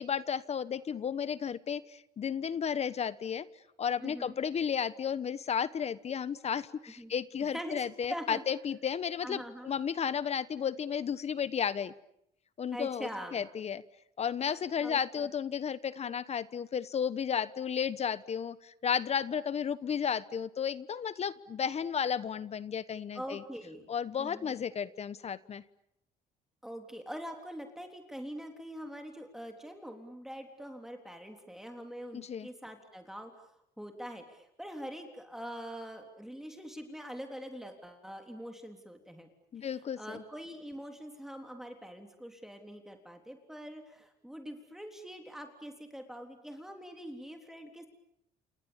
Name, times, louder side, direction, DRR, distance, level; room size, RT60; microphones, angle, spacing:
voice 1, 0.0-3.5 3.8-11.9 12.6-13.8 14.2-23.4 23.9-25.6 32.1-32.5 39.5-40.2, left 7 dB, 40° left, 16 dB, 1.1 m, -33 dB
voice 2, 4.0-4.4 7.0-7.1 7.4-8.4 9.2-9.7 12.7-13.4 14.8-15.3 23.1-23.9 24.2-24.6 26.6-33.3 33.8-39.3 40.0-47.9, equal, ahead, 4 dB, 3.6 m, -44 dB
29.5 x 28.0 x 7.2 m, 0.77 s
cardioid pair, 110°, 17 cm